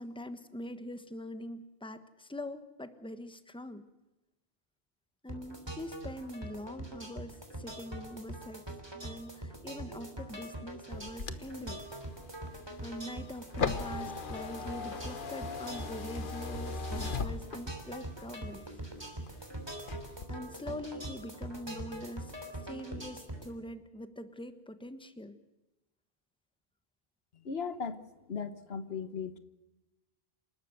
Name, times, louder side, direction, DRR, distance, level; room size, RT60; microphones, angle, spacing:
voice 1, 0.0-3.9 5.2-8.7 9.0-11.8 12.8-18.7 20.3-22.3 22.6-25.4, left 1 dB, 5° left, 11 dB, 1.2 m, -43 dB
sound 1, 5.3-23.5, right 1 dB, 25° right, 3.2 m, -43 dB
sound 2, 10.9-18.0 18.4-19.4 19.8-20.3, left 5 dB, 55° left, 1.3 m, -38 dB
voice 2, 27.3-28.0 28.3-29.4, left 6 dB, 80° left, 12 dB, 1.4 m, -37 dB
28.0 x 12.5 x 7.9 m, 1.0 s
omnidirectional pair, 1.0 m